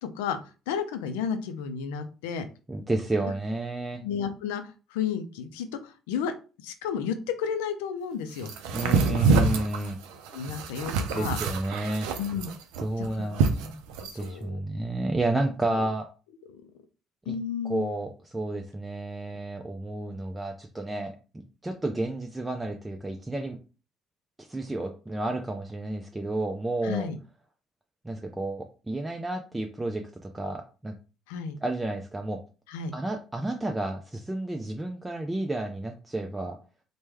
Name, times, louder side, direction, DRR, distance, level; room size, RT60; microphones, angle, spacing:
voice 1, 0.0-0.4 0.7-2.5 3.2-3.3 4.0-6.3 6.6-8.5 8.8-9.3 10.3-11.4 12.2-12.5 13.0-13.3 14.0-14.6 15.7-15.9 16.5-16.7 17.3-17.9 26.8-27.2 31.3-31.6 32.7-32.9, left 7 dB, 85° left, 8 dB, 0.4 m, -32 dB
voice 2, 2.7-4.0 8.7-10.0 11.1-12.1 12.8-13.8 14.1-16.1 17.3-17.4 17.7-21.1 21.6-23.6 24.4-27.1 28.0-30.9 31.6-32.4 32.9-36.6, right 2 dB, 15° right, 3 dB, 0.5 m, -31 dB
sound 1, 8.4-14.2, right 4 dB, 80° right, 0.4 m, -26 dB
3.2 x 2.1 x 3.3 m, 0.34 s
hypercardioid pair, 60°, 0 cm